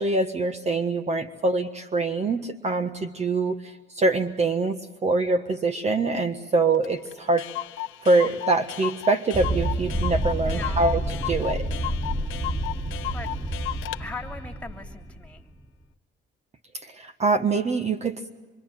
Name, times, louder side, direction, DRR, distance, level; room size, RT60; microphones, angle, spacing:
voice 1, 0.0-7.5 8.0-11.0 11.3-11.7 16.8-18.3, right 3 dB, 35° right, 8 dB, 1.4 m, -24 dB
Clock, 6.8-6.9 7.1-7.2 7.4-14.0, left 15 dB, 85° left, 1.0 m, -34 dB
sound 1, 9.3-15.5, right 1 dB, 10° right, 0.9 m, -29 dB
voice 2, 10.4-11.0 13.1-13.3 14.0-15.4, left 3 dB, 5° left, 3 dB, 3.1 m, -39 dB
26.5 x 24.0 x 9.1 m, 1.2 s
cardioid pair, 125°, 20 cm